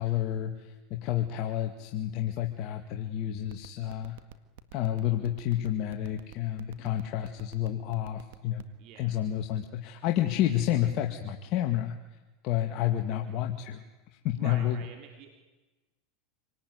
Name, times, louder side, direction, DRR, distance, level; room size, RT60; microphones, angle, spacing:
voice 1, 0.0-4.2 4.7-8.6 9.0-11.9 12.4-13.8 14.1-14.8, left 12 dB, 55° left, 3 dB, 2.2 m, -30 dB
sound 1, 3.4-8.7, right 15 dB, 75° right, 1.8 m, -47 dB
voice 2, 8.8-9.2 14.4-15.5, right 7 dB, 55° right, 4 dB, 3.4 m, -47 dB
27.0 x 19.0 x 9.8 m, 1.1 s
hypercardioid pair, 100°, 0 cm